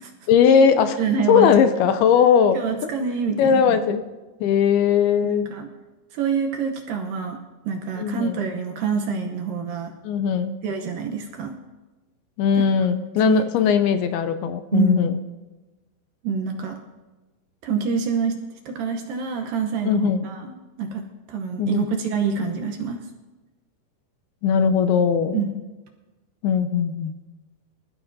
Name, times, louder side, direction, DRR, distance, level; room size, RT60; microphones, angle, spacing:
voice 1, 0.3-1.0 1.3-2.6 3.4-4.0 4.4-5.5 8.0-8.4 10.0-10.6 12.4-15.2 19.8-20.3 21.6-21.9 24.4-25.4 26.4-27.1, left 7 dB, 80° left, 9 dB, 2.4 m, -19 dB
voice 2, 1.0-1.5 2.5-4.0 5.4-5.7 6.1-7.4 7.7-9.9 10.6-11.5 12.5-12.6 13.2-13.4 14.7-15.0 16.2-16.8 17.6-18.4 18.7-20.5 20.8-23.0 25.3-25.5, right 5 dB, 70° right, 3 dB, 2.2 m, -26 dB
24.5 x 13.5 x 2.7 m, 1.2 s
omnidirectional pair, 4.8 m